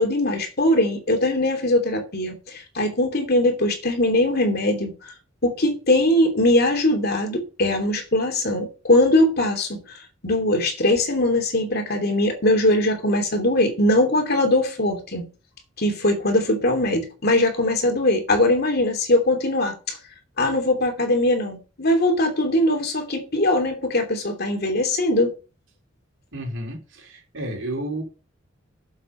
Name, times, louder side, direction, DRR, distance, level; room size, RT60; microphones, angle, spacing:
voice 1, 0.0-4.9 5.4-10.0 10.2-15.3 15.8-20.0 20.4-25.3, left 1 dB, 55° left, 2.9 m, -21 dB
voice 2, 26.3-28.0, right 1 dB, 70° right, 4.1 m, -31 dB
8.0 x 7.6 x 6.1 m
head